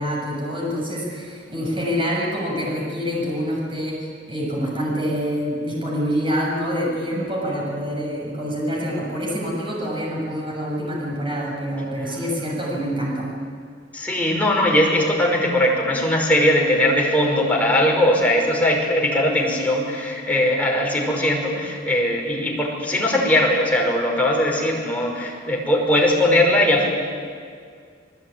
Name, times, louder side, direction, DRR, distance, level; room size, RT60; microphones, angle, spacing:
voice 1, 0.0-13.3, equal, 25° right, -3 dB, 7.1 m, -26 dB
voice 2, 13.9-26.9, left 1 dB, 10° left, -2 dB, 5.6 m, -20 dB
28.0 x 20.5 x 9.6 m, 2.1 s
head